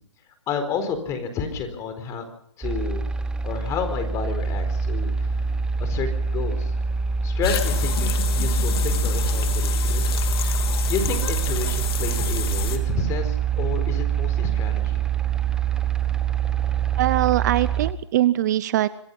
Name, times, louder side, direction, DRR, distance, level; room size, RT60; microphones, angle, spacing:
voice 1, 0.5-2.2 2.6-3.0 3.4-5.3 5.8-6.7 7.2-10.2 10.9-15.0, left 5 dB, 20° left, 8 dB, 4.4 m, -30 dB
sound 1, 2.6-17.9, right 5 dB, 5° right, 0.9 m, -25 dB
sound 2, 7.4-12.8, left 7 dB, 55° left, 3.2 m, -29 dB
voice 2, 17.0-18.9, right 14 dB, 40° right, 17 dB, 0.8 m, -21 dB
26.5 x 21.0 x 5.6 m, 0.66 s
hypercardioid pair, 150°, 15 cm